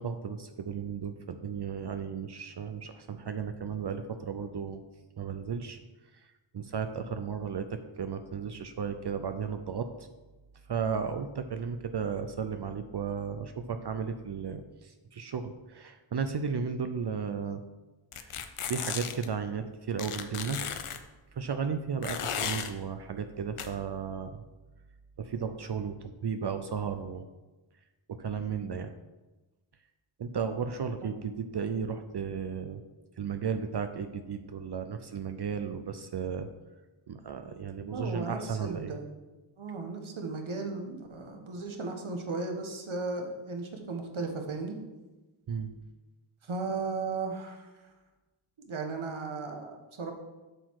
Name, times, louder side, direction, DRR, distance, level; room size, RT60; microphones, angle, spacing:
voice 1, 0.0-4.8 5.2-5.8 6.5-9.9 10.7-17.6 18.1-20.6 21.4-24.4 25.2-27.3 28.1-28.9 30.2-32.8 33.2-36.5 37.1-39.0 45.5-45.7, right 6 dB, 55° right, 8 dB, 0.6 m, -34 dB
sound 1, 18.1-19.3 20.0-21.0 22.0-22.7 23.6-23.7, left 8 dB, 90° left, 0.7 m, -35 dB
voice 2, 37.8-39.1 39.6-44.8 46.4-47.7 48.6-50.1, right 3 dB, 70° right, 4 dB, 1.4 m, -36 dB
7.7 x 6.5 x 4.7 m, 1.2 s
wide cardioid pair, 100°, 49 cm